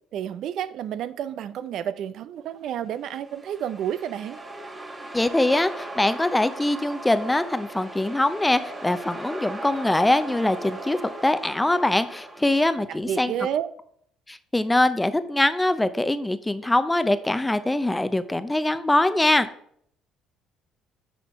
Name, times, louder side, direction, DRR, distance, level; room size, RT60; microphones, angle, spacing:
voice 1, 0.1-4.4 13.1-13.7, right 9 dB, 70° right, 0.4 m, -30 dB
sound 1, 3.0-12.8, right 2 dB, 20° right, 1.4 m, -38 dB
voice 2, 5.1-13.3 14.3-19.5, left 1 dB, 10° left, 0.6 m, -23 dB
10.0 x 4.2 x 4.2 m
cardioid pair, 90°, 0 cm